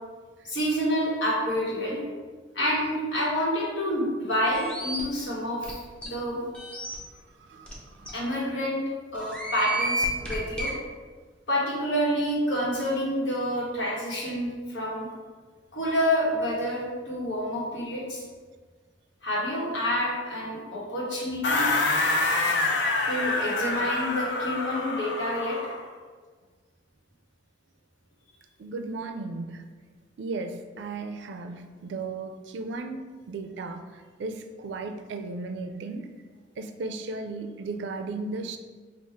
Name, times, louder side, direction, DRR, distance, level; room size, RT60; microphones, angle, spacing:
voice 1, 0.4-2.0 2.5-6.4 8.1-8.8 9.1-10.7 11.5-15.1 15.7-18.2 19.2-21.7 22.6-25.6, equal, 90° left, -5 dB, 1.3 m, -28 dB
sound 1, 4.5-5.0 5.6-5.7 6.0-6.1 6.5-6.9 7.7-7.8 8.1-8.2 9.1-10.7, right 1 dB, 5° left, 0.6 m, -31 dB
voice 2, 6.9-8.2 28.6-29.6 30.2-36.2 36.6-38.6, right 3 dB, 75° right, 7 dB, 0.3 m, -36 dB
sound 2, 21.4-25.8, left 2 dB, 75° left, 0.5 m, -26 dB
3.5 x 2.4 x 4.5 m, 1.5 s
head